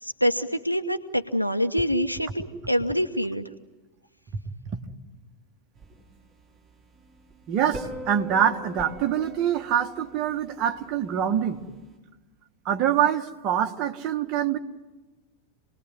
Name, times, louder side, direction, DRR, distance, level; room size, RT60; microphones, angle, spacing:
voice 1, 0.0-3.4, equal, 90° right, 6 dB, 0.9 m, -25 dB
sound 1, 5.8-12.0, equal, 10° right, 5.6 m, -43 dB
voice 2, 7.5-11.6 12.7-14.6, right 9 dB, 35° right, 4 dB, 1.8 m, -25 dB
27.5 x 19.5 x 9.5 m, 1.2 s
figure-of-eight pair, 90°, 0 cm